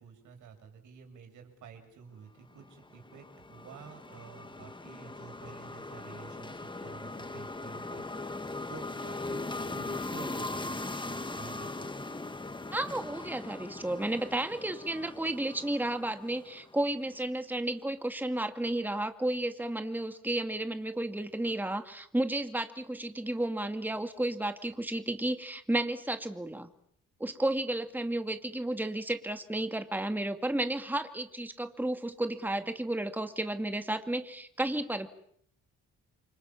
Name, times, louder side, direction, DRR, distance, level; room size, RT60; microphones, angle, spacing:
voice 1, 0.0-8.3 8.7-12.1, right 6 dB, 80° right, 6 dB, 7.2 m, -50 dB
sound 1, 2.6-16.9, left 2 dB, 15° left, 1.8 m, -40 dB
voice 2, 12.7-26.7 27.2-35.1, right 1 dB, 5° right, 7 dB, 2.3 m, -32 dB
29.0 x 25.0 x 7.3 m, 0.67 s
cardioid pair, 90°, 30 cm